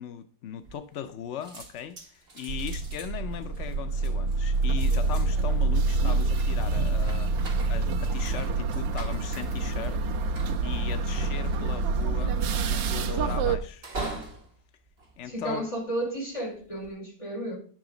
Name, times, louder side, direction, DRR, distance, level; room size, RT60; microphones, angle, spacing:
voice 1, 0.0-10.3 10.6-12.4 12.7-14.2 15.2-15.7, left 8 dB, 75° left, 0.6 m, -38 dB
Unlock open close apartment door from hallway louder, 0.6-1.2 1.4-16.0 16.5-16.9, right 3 dB, 35° right, 1.7 m, -44 dB
sound 1, 2.5-13.6, right 3 dB, 85° right, 1.5 m, -27 dB
voice 2, 15.2-17.6, right 1 dB, 15° left, 4.1 m, -33 dB
10.5 x 7.8 x 3.8 m
omnidirectional pair, 2.0 m